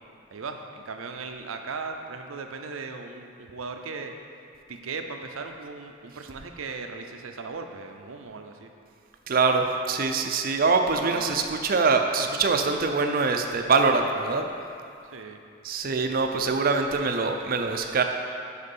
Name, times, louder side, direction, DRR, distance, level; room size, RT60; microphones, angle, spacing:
voice 1, 0.3-4.1 4.7-8.7 10.9-11.4 15.0-15.4, right 4 dB, 90° right, 5 dB, 0.6 m, -37 dB
voice 2, 9.3-14.4 15.6-18.0, right 4 dB, 45° right, 4 dB, 0.4 m, -24 dB
6.6 x 5.1 x 5.4 m, 2.5 s
head